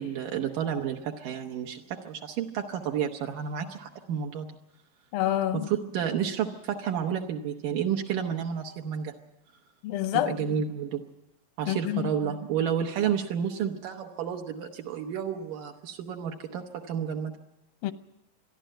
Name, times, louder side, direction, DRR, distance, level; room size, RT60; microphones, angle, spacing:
voice 1, 0.0-4.5 5.5-9.1 10.1-11.0 11.6-17.3, right 8 dB, 75° right, 2.6 m, -31 dB
voice 2, 5.1-5.7 9.8-10.4 11.7-12.1 17.8-17.9, left 13 dB, 85° left, 2.6 m, -27 dB
26.5 x 11.5 x 9.0 m
omnidirectional pair, 4.0 m